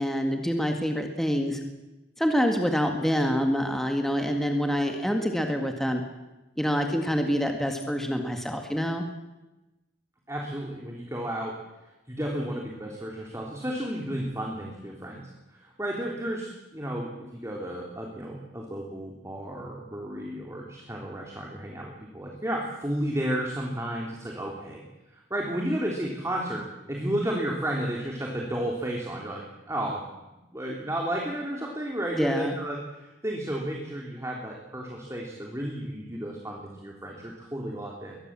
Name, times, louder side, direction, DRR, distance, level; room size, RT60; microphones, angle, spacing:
voice 1, 0.0-1.6 2.2-6.0 6.6-9.0 32.1-32.6, equal, ahead, 3 dB, 1.9 m, -26 dB
voice 2, 10.3-11.6 12.1-24.8 25.1-30.0 30.5-38.2, right 1 dB, 15° right, -1 dB, 3.3 m, -32 dB
22.5 x 19.5 x 7.5 m, 1.0 s
head